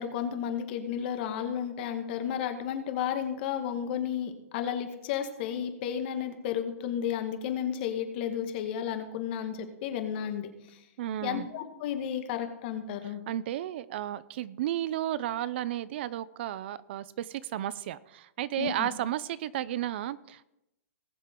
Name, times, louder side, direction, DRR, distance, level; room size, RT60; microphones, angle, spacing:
voice 1, 0.0-10.8 11.2-13.2 18.6-18.9, left 9 dB, 45° left, 1.6 m, -33 dB
voice 2, 11.0-11.5 13.0-20.4, right 12 dB, 50° right, 0.4 m, -33 dB
19.5 x 7.5 x 3.7 m
hypercardioid pair, 150°, 8 cm